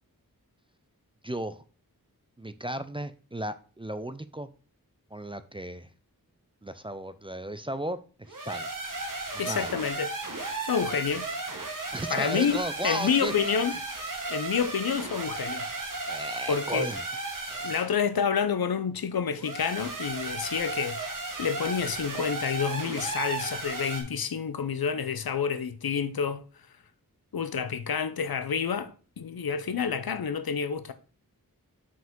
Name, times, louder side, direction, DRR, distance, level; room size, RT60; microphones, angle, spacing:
voice 1, 1.2-1.6 2.4-4.5 5.1-5.9 6.6-8.0 8.3-8.7 9.5-9.7 11.9-13.5 16.1-17.0 17.5-17.7, right 1 dB, 15° right, 0.4 m, -35 dB
sound 1, 8.3-17.9 19.4-24.0, right 3 dB, 60° right, 1.4 m, -35 dB
voice 2, 9.4-10.1 10.6-11.3 12.1-13.7 14.3-15.6 16.5-16.9 17.6-21.0 21.4-26.4 27.3-30.9, left 6 dB, 80° left, 0.6 m, -28 dB
5.7 x 5.0 x 3.7 m
wide cardioid pair, 65°, 36 cm